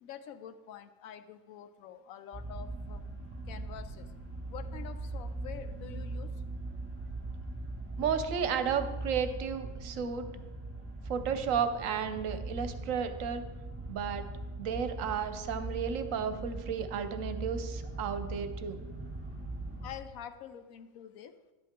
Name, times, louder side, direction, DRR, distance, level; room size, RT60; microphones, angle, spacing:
voice 1, 0.0-3.1 3.5-4.1 4.5-6.3 19.8-21.4, left 9 dB, 80° left, 11 dB, 1.0 m, -46 dB
sound 1, 2.3-19.9, right 2 dB, 10° right, 2.3 m, -40 dB
voice 2, 8.0-10.3 11.1-13.4 13.9-14.2 14.6-18.8, right 7 dB, 75° right, 9 dB, 1.0 m, -33 dB
11.0 x 8.4 x 3.6 m, 1.2 s
omnidirectional pair, 1.4 m